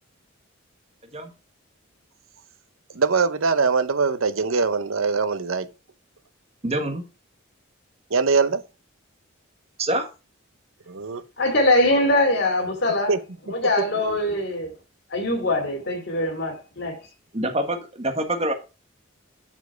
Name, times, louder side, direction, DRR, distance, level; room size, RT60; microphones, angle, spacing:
voice 1, 2.9-5.7 8.1-8.6 10.9-11.2 13.1-13.2 13.5-13.6, right 4 dB, 75° right, 0.8 m, -22 dB
voice 2, 6.6-7.0 9.8-10.1 17.3-18.5, right 1 dB, 30° right, 1.6 m, -25 dB
voice 3, 11.4-13.1 13.5-14.7 15.1-17.0, left 1 dB, 55° left, 2.9 m, -22 dB
7.2 x 7.1 x 4.5 m
head